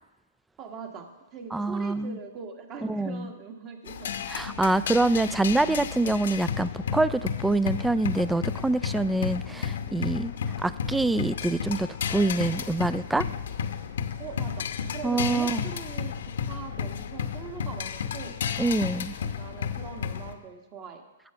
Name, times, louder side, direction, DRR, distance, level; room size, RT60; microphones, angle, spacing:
voice 1, 0.6-4.1 14.2-18.4 19.1-21.0, right 5 dB, 30° right, 5 dB, 1.4 m, -41 dB
voice 2, 1.5-2.2 2.9-3.3 4.3-10.3 10.6-13.2 15.0-15.6 18.6-19.1, right 2 dB, 5° right, 16 dB, 0.3 m, -25 dB
sound 1, 3.9-20.3, left 7 dB, 70° left, 0.8 m, -32 dB
9.0 x 6.5 x 6.9 m, 1.0 s
hypercardioid pair, 125°, 0 cm